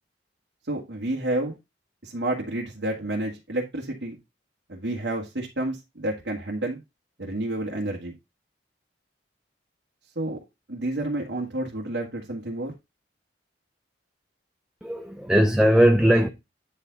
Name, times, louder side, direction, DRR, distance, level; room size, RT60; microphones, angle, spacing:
voice 1, 0.7-1.6 2.0-4.2 4.7-6.8 7.2-8.1 10.2-10.4 10.7-12.7, right 1 dB, 75° right, 1.9 m, -30 dB
voice 2, 14.8-16.3, equal, 5° right, 0.7 m, -19 dB
9.5 x 4.6 x 4.0 m
head